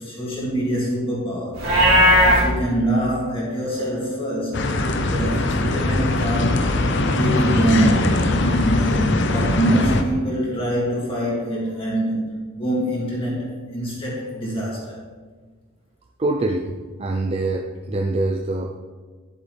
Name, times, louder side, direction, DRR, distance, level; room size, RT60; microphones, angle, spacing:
voice 1, 0.0-1.6 2.3-4.7 5.0-6.6 7.0-8.3 8.8-15.0, right 1 dB, 25° left, -6 dB, 2.5 m, -24 dB
Livestock farm animals working animals, 1.5-2.4, equal, 85° right, 2.4 m, -15 dB
sound 1, 4.5-10.0, left 2 dB, 55° left, 0.7 m, -21 dB
voice 2, 16.2-18.8, right 2 dB, 30° right, 2 dB, 0.4 m, -24 dB
10.5 x 8.0 x 3.4 m, 1.4 s
head